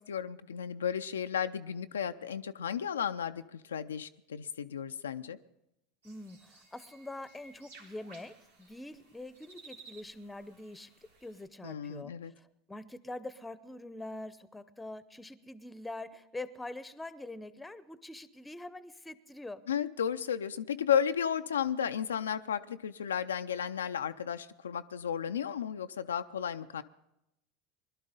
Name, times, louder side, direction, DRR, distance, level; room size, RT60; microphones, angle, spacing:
voice 1, 0.0-5.4 11.6-12.3 19.7-26.8, left 8 dB, 80° left, 9 dB, 0.4 m, -33 dB
voice 2, 6.0-10.9 11.2-19.6, left 2 dB, 10° left, 15 dB, 0.8 m, -44 dB
sound 1, 6.0-11.5, right 3 dB, 80° right, 2.1 m, -57 dB
21.5 x 12.0 x 3.8 m, 0.85 s
hypercardioid pair, 80°, 0 cm